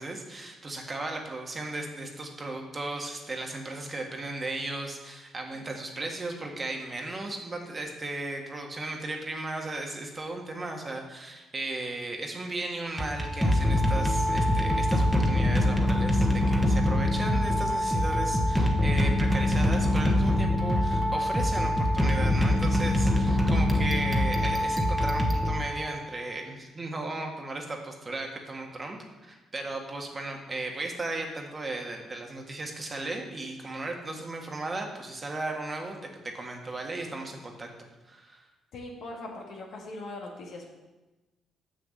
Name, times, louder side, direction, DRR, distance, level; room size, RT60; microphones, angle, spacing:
voice 1, 0.0-36.0 36.2-37.7 38.0-38.4, right 2 dB, 30° right, 2 dB, 1.6 m, -36 dB
sound 1, 13.0-26.1, left 1 dB, ahead, 1.3 m, -24 dB
voice 2, 38.7-40.7, left 2 dB, 70° left, 0 dB, 2.0 m, -40 dB
6.7 x 6.5 x 7.5 m, 1.1 s
cardioid pair, 90°, 0 cm